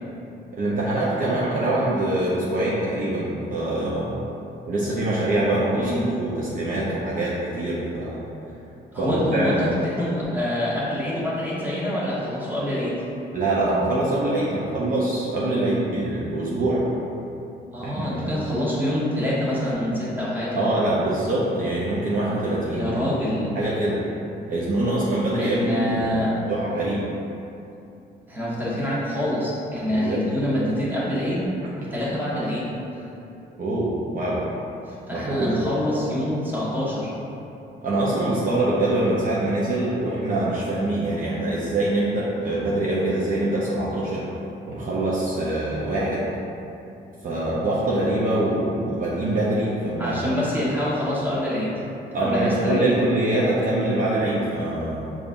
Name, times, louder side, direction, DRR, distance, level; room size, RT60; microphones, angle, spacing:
voice 1, 0.5-4.2 4.7-5.9 6.2-8.2 9.0-9.8 13.3-16.8 17.8-18.5 20.5-23.0 23.5-24.1 24.5-27.1 29.9-30.3 33.6-34.4 35.1-35.6 37.8-44.3 44.7-46.3 47.2-50.2 52.1-55.2, right 1 dB, 45° right, -7 dB, 0.6 m, -24 dB
voice 2, 5.7-6.1 8.9-13.0 17.7-20.7 22.7-23.6 25.3-26.4 28.3-31.5 31.8-32.7 35.1-37.1 50.0-51.7 52.2-52.9, left 1 dB, 10° right, -8 dB, 1.1 m, -26 dB
5.1 x 2.4 x 2.5 m, 2.8 s
cardioid pair, 90°, 20 cm